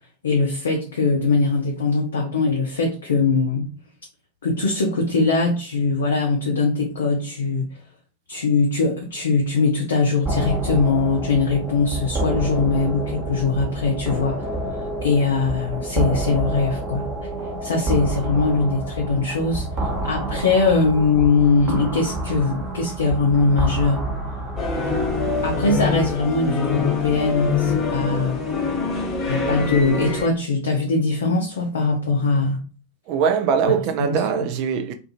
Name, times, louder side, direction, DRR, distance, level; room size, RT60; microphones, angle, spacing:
voice 1, 0.2-3.7 4.4-7.6 8.3-14.5 15.0-17.1 17.6-19.7 20.0-24.1 24.8-25.0 25.4-28.4 29.3-32.6 34.0-34.2, left 4 dB, 65° left, 0.5 m, -21 dB
sound 1, 10.3-25.5, right 1 dB, 20° right, 0.8 m, -28 dB
sound 2, 24.6-30.3, left 4 dB, 25° left, 0.8 m, -24 dB
voice 2, 33.1-34.9, right 7 dB, 40° right, 0.4 m, -21 dB
2.5 x 2.4 x 2.6 m
figure-of-eight pair, 90°, 0 cm